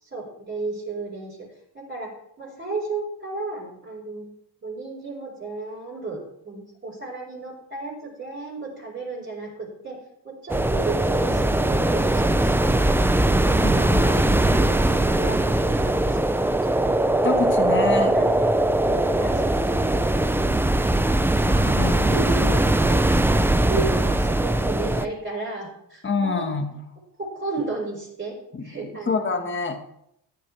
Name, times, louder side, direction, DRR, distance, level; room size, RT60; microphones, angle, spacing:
voice 1, 0.0-1.5 1.7-2.1 2.4-4.3 4.6-10.0 10.2-12.9 13.4-14.2 14.5-16.7 18.0-18.3 18.8-19.8 22.0-23.3 23.7-26.5 27.2-29.3, right 3 dB, 25° right, -8 dB, 4.7 m, -33 dB
sound 1, 10.5-25.1, right 1 dB, 5° right, 0.3 m, -20 dB
voice 2, 13.6-14.5 17.2-18.3 21.5-22.1 26.0-26.8 28.5-28.6 29.1-29.8, left 4 dB, 25° left, 5 dB, 1.6 m, -27 dB
15.0 x 10.5 x 3.3 m, 0.75 s
cardioid pair, 140°, 43 cm